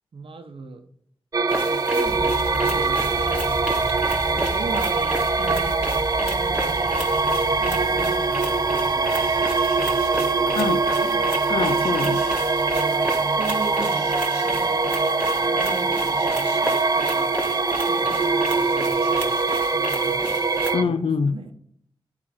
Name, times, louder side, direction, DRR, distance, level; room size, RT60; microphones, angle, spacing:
voice 1, 0.1-0.9 1.7-3.6 4.4-5.9 6.2-7.1 7.6-9.3 9.8-11.4 12.7-14.2 14.4-14.9 15.5-17.4 17.9-19.4 19.7-20.4 20.7-21.5, right 3 dB, 80° right, 0.9 m, -38 dB
sound 1, 1.3-20.8, right 3 dB, 45° right, 0.4 m, -23 dB
sound 2, 1.5-20.7, equal, 10° right, 1.6 m, -34 dB
sound 3, 2.0-14.2, equal, 10° left, 1.5 m, -36 dB
voice 2, 11.5-12.3 20.7-21.4, left 5 dB, 90° left, 0.5 m, -24 dB
8.5 x 4.4 x 4.3 m
wide cardioid pair, 85°, 9 cm